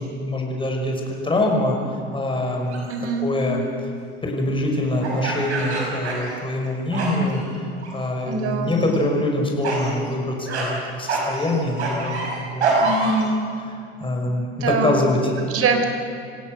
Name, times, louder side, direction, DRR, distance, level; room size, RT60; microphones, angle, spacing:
voice 1, 0.0-1.8 2.1-2.9 3.2-3.6 4.2-7.4 7.9-12.2 12.5-13.1 14.0-15.3, left 1 dB, 15° left, 1 dB, 5.8 m, -24 dB
sound 1, 2.7-3.0 5.0-6.7 6.9-7.4 7.8-8.3 8.7-9.0 9.6-9.9 10.5-10.7 11.1-13.3, right 3 dB, 85° right, 5.8 m, -25 dB
voice 2, 2.9-3.3 8.3-8.9 12.8-13.4 14.5-15.0 15.4-15.9, right 4 dB, 45° right, 6 dB, 4.0 m, -23 dB
27.5 x 16.5 x 6.7 m, 2.4 s
hypercardioid pair, 85°, 33 cm